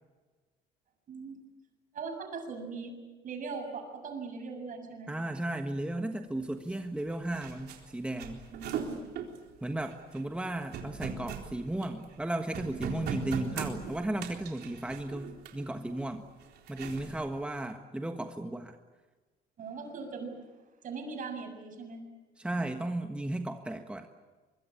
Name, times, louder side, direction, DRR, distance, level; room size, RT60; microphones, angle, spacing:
voice 1, 1.1-1.4 1.9-2.9 3.2-5.1 8.5-9.1 19.6-20.5 20.8-22.0, right 4 dB, 50° right, 5 dB, 7.0 m, -40 dB
voice 2, 5.1-8.4 9.6-16.2 16.7-18.8 22.4-24.1, right 1 dB, 5° right, 5 dB, 1.5 m, -35 dB
sound 1, 6.7-6.8 7.0-12.2 12.5-15.7 16.4-17.2, right 7 dB, 75° right, 3.9 m, -39 dB
24.5 x 23.5 x 8.6 m, 1.3 s
cardioid pair, 110°, 17 cm